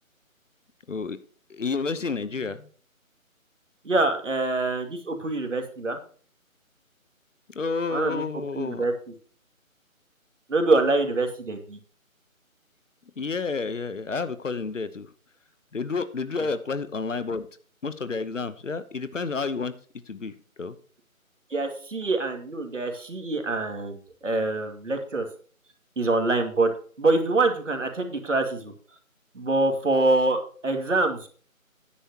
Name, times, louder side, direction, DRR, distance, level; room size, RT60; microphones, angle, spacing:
voice 1, 0.9-1.2 1.5-2.7 7.5-8.9 13.2-15.1 15.7-17.5 17.8-19.7 20.1-20.8, left 4 dB, 60° left, 13 dB, 1.0 m, -30 dB
voice 2, 3.8-6.0 7.9-8.9 10.5-11.8 16.4-16.5 21.5-24.0 24.2-25.3 26.0-26.7 27.0-28.7 29.3-31.3, right 2 dB, 60° right, 5 dB, 2.3 m, -25 dB
13.0 x 10.0 x 2.9 m, 0.44 s
figure-of-eight pair, 155°, 42 cm